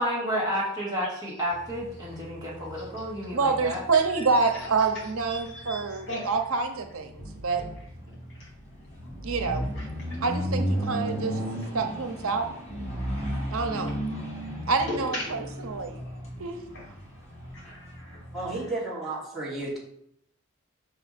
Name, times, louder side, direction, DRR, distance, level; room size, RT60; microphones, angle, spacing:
voice 1, 0.0-3.8, equal, 20° right, -7 dB, 2.4 m, -31 dB
sound 1, 1.5-18.7, equal, 30° left, 1.9 m, -35 dB
voice 2, 3.3-7.6 9.2-9.7 10.2-11.4 11.7-12.5 13.5-14.0 14.7-16.0 16.4-16.6, right 4 dB, 85° right, 6 dB, 0.9 m, -27 dB
voice 3, 5.3-6.3 9.7-10.2 14.9-15.3 16.7-16.8 17.5-18.2, left 1 dB, 55° left, -4 dB, 3.0 m, -37 dB
voice 4, 18.3-19.8, right 2 dB, ahead, -9 dB, 2.9 m, -32 dB
6.4 x 5.5 x 4.3 m, 0.72 s
head